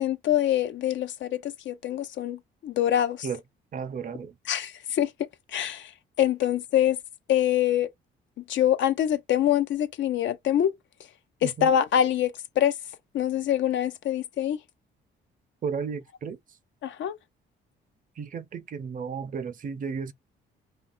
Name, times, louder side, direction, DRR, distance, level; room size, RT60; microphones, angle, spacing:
voice 1, 0.0-3.3 4.5-5.9 6.2-7.0 7.3-7.9 8.5-10.7 11.4-12.7 13.1-14.6 16.8-17.2, left 11 dB, 70° left, 0.5 m, -25 dB
voice 2, 3.7-4.3 11.4-11.7 15.6-16.4 18.2-20.1, right 6 dB, 45° right, 0.5 m, -33 dB
2.7 x 2.2 x 2.5 m
cardioid pair, 90°, 20 cm